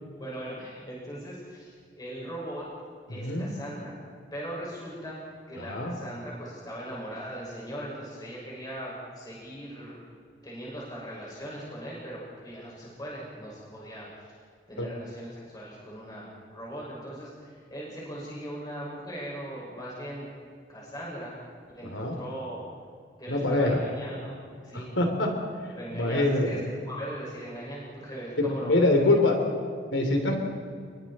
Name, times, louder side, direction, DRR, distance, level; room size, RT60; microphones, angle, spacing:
voice 1, 0.2-2.7 3.1-3.9 4.3-5.2 5.5-10.0 10.4-14.3 14.7-20.3 20.7-21.4 21.7-22.6 23.2-24.9 25.7-28.8 29.3-29.9, equal, 20° left, -6 dB, 6.0 m, -39 dB
voice 2, 3.1-3.5 5.6-5.9 14.8-14.9 21.8-22.1 23.3-23.8 24.7-25.3 25.9-26.5 28.4-29.4 29.9-30.4, left 2 dB, 85° left, 3 dB, 3.3 m, -24 dB
29.5 x 23.0 x 4.3 m, 2.1 s
head